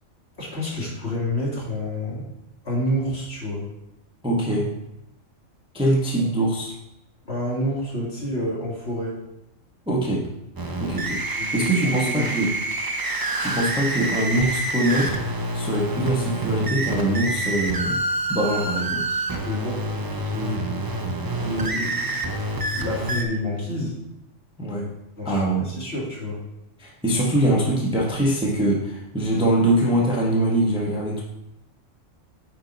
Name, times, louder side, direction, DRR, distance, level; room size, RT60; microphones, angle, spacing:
voice 1, 0.4-2.2 2.6-3.6 7.2-9.2 11.4-12.5 19.1-20.7 21.4-22.2 22.7-24.0 25.2-26.4, left 1 dB, 50° left, -5 dB, 2.5 m, -29 dB
voice 2, 4.2-4.7 5.7-6.7 9.9-10.3 10.8-12.5 13.4-15.1 15.5-18.0 18.3-19.1 24.6-24.9 25.2-25.7 26.8-31.2, right 1 dB, 5° right, -3 dB, 1.0 m, -23 dB
sound 1, 10.6-23.2, right 2 dB, 30° right, 0.4 m, -27 dB
9.1 x 4.3 x 4.0 m, 0.87 s
omnidirectional pair, 1.4 m